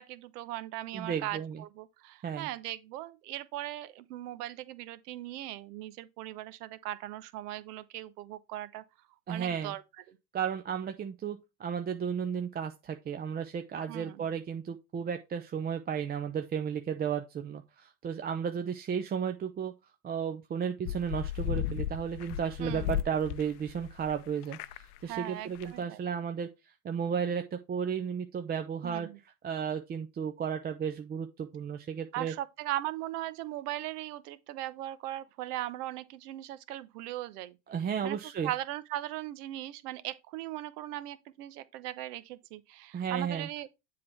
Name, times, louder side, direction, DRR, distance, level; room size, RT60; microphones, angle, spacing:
voice 1, 0.0-8.8 9.3-9.8 10.1-10.2 13.9-14.2 22.6-22.9 25.0-26.0 28.8-29.2 32.1-37.6 38.0-38.2 38.4-43.7, right 14 dB, 75° right, 0.9 m, -39 dB
voice 2, 0.9-1.6 2.2-2.5 9.3-9.7 10.3-19.7 20.0-29.1 29.4-32.3 37.7-38.5 42.9-43.5, right 7 dB, 20° right, 0.5 m, -34 dB
sound 1, 20.8-24.1 24.4-25.0 25.2-25.3 25.5-25.7, left 11 dB, 80° left, 0.6 m, -35 dB
7.6 x 3.7 x 4.3 m
supercardioid pair, 100°, 46 cm